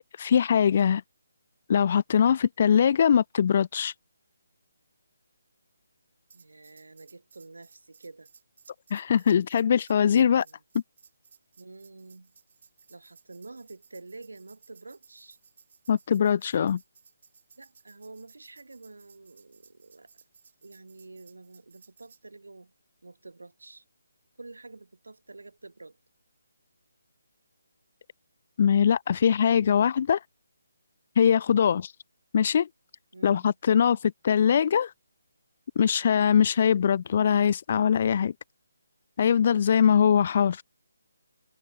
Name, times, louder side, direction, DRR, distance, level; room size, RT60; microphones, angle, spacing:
voice 1, 0.2-1.0 1.7-3.9 8.9-10.4 15.9-16.8 28.6-30.2 31.2-31.9 32.3-32.7 33.2-34.9 35.8-38.3 39.2-40.6, left 8 dB, 40° left, 0.4 m, -22 dB
Tambourine, 6.3-22.2, right 6 dB, 50° right, 7.4 m, -59 dB
voice 2, 6.3-8.3 9.9-10.6 11.6-12.3 12.9-15.4 17.6-20.1 20.6-22.7 23.0-23.8 24.4-26.0 33.1-34.0, right 3 dB, 90° right, 7.5 m, -48 dB
hypercardioid pair, 165°, 0 cm